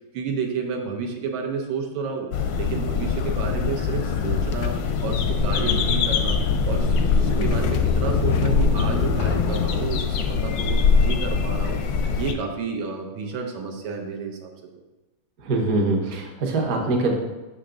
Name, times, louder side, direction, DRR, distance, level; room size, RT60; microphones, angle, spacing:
voice 1, 0.1-2.3 2.6-6.4 6.7-11.8 12.1-14.5, right 5 dB, 80° right, 2 dB, 1.5 m, -30 dB
sound 1, 2.3-12.3, left 5 dB, 70° left, 0.9 m, -23 dB
sound 2, 4.1-9.7, left 6 dB, 85° left, 1.4 m, -26 dB
voice 2, 15.4-17.1, right 2 dB, 55° right, 1 dB, 1.3 m, -23 dB
6.0 x 5.8 x 3.8 m, 1.1 s
omnidirectional pair, 2.2 m